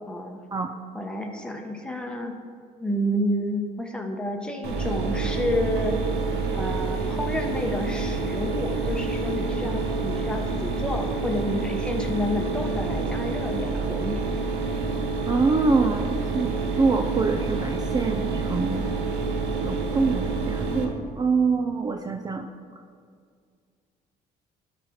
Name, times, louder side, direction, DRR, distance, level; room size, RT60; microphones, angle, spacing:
voice 1, 0.1-0.4 0.9-2.3 2.8-6.0 6.5-14.2, left 1 dB, 5° left, 2 dB, 0.9 m, -30 dB
Mechanisms, 4.6-20.8, right 3 dB, 80° right, 1.2 m, -28 dB
voice 2, 15.3-18.8 19.6-22.5, right 4 dB, 25° right, 5 dB, 0.4 m, -25 dB
12.0 x 4.2 x 4.3 m, 2.2 s
cardioid pair, 110°, 17 cm